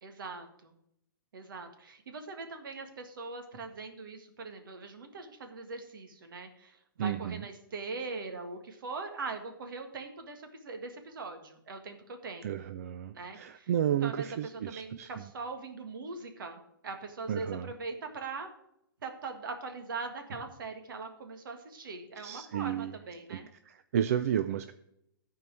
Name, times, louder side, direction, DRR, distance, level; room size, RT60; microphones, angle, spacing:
voice 1, 0.0-0.7 1.3-12.6 13.1-13.7 14.0-18.5 19.0-23.5, right 4 dB, 65° right, 5 dB, 1.7 m, -41 dB
voice 2, 7.0-7.4 12.4-15.1 17.3-17.7 22.2-22.9 23.3-24.7, right 10 dB, 40° right, 11 dB, 0.4 m, -32 dB
12.5 x 4.6 x 6.2 m, 0.77 s
hypercardioid pair, 170°, 12 cm